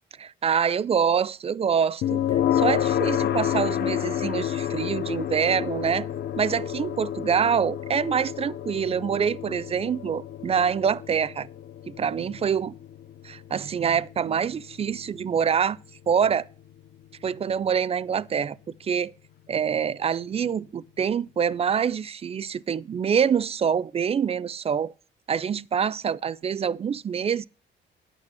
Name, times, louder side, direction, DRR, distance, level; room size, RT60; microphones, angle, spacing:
voice 1, 0.2-2.2 2.5-6.1 6.4-11.5 11.9-12.7 13.2-15.8 16.1-16.5 17.2-19.1 19.5-24.9 25.3-27.4, right 7 dB, 30° right, 0.4 m, -25 dB
sound 1, 2.0-17.0, left 10 dB, 60° left, 0.5 m, -30 dB
9.0 x 5.9 x 7.3 m
cardioid pair, 90°, 20 cm